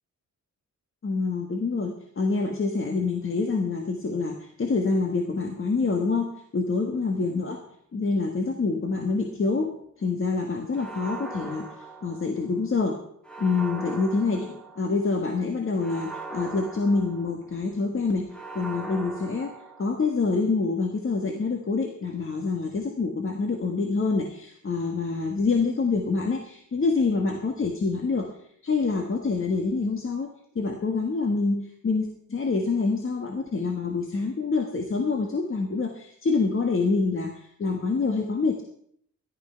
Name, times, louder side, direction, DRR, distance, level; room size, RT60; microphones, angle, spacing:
voice 1, 1.0-7.6 7.9-13.0 13.4-28.3 28.6-30.3 30.5-38.6, left 4 dB, 40° left, 3 dB, 1.5 m, -26 dB
sound 1, 10.7-12.6 13.2-15.1 15.8-17.6 18.3-20.2, right 3 dB, 5° left, 1.6 m, -40 dB
14.0 x 12.0 x 5.7 m, 0.67 s
wide cardioid pair, 165°, 31 cm